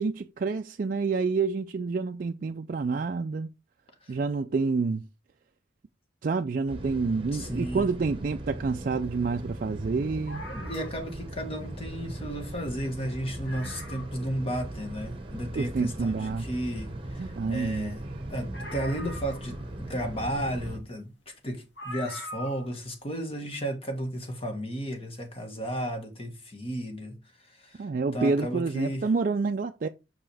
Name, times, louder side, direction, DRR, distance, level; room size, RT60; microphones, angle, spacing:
voice 1, 0.0-3.5 4.1-5.0 6.2-10.4 15.6-16.4 17.2-17.9 27.8-29.9, right 4 dB, 45° right, 0.3 m, -28 dB
sound 1, 6.7-20.8, right 1 dB, 30° right, 1.1 m, -39 dB
voice 2, 7.3-7.9 10.5-18.0 18.3-27.1 27.5-27.9 28.1-29.0, right 1 dB, 30° left, 1.5 m, -34 dB
sound 2, 10.3-11.2 12.3-12.4 12.7-12.8 13.1-13.2 13.4-14.3 14.8-14.9 18.5-19.8 21.0-21.1 21.8-22.7 23.0-23.1, left 1 dB, 70° left, 2.2 m, -42 dB
6.0 x 5.6 x 3.4 m
head